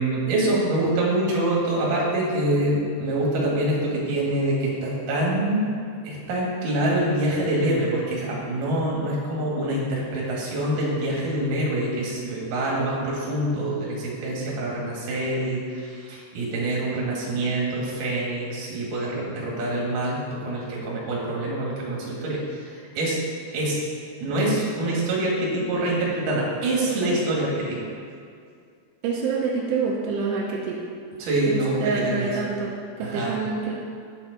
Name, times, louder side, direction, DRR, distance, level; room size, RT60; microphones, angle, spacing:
voice 1, 0.0-5.7 6.0-23.2 23.5-23.8 24.2-27.9 31.2-32.3 33.0-33.3, right 1 dB, 60° right, -4 dB, 3.0 m, -25 dB
voice 2, 29.0-30.8 31.5-33.7, right 4 dB, 85° right, -3 dB, 2.8 m, -27 dB
9.2 x 7.2 x 4.0 m, 2.3 s
omnidirectional pair, 4.9 m